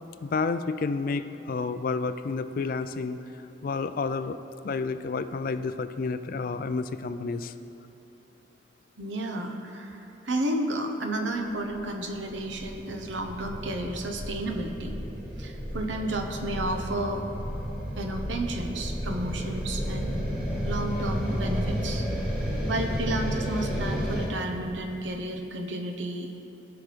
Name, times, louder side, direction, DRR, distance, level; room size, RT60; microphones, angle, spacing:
voice 1, 0.2-3.2 3.6-4.4 4.6-7.5, left 4 dB, 50° left, 11 dB, 0.3 m, -30 dB
voice 2, 9.0-14.9 15.4-17.3 18.0-20.2 20.6-22.0 22.7-26.3, right 1 dB, 80° right, 3 dB, 0.9 m, -32 dB
sound 1, 11.7-24.3, equal, 5° right, 1.6 m, -32 dB
17.5 x 5.9 x 3.4 m, 3.0 s
head